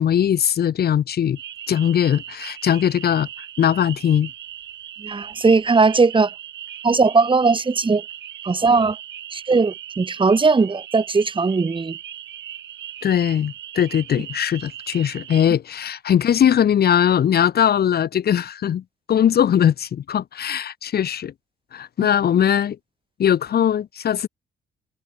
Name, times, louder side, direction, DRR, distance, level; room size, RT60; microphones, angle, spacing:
voice 1, 0.0-1.4 1.7-4.3 13.0-21.3 21.7-22.8 23.2-24.3, left 9 dB, 50° left, 0.9 m, -20 dB
sound 1, 1.4-15.5, right 11 dB, 70° right, 2.0 m, -38 dB
voice 2, 5.0-6.3 6.8-8.0 8.4-9.0 9.3-12.0, right 4 dB, 25° right, 1.4 m, -18 dB
cardioid pair, 90°, 20 cm